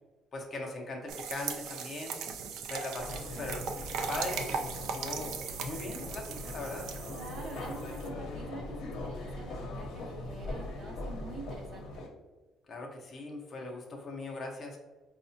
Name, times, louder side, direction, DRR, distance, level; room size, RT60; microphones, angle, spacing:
voice 1, 0.3-2.2 2.7-3.7 4.1-5.4 5.6-6.9 12.7-14.8, left 2 dB, 30° left, 0 dB, 0.5 m, -40 dB
sound 1, 1.1-8.1, right 6 dB, 70° right, 0.3 m, -39 dB
sound 2, 2.9-12.1, left 2 dB, 70° left, 0.7 m, -41 dB
voice 2, 7.1-12.0, right 2 dB, 40° right, 1 dB, 0.7 m, -46 dB
4.6 x 2.1 x 2.6 m, 1.2 s
cardioid pair, 150°, 0 cm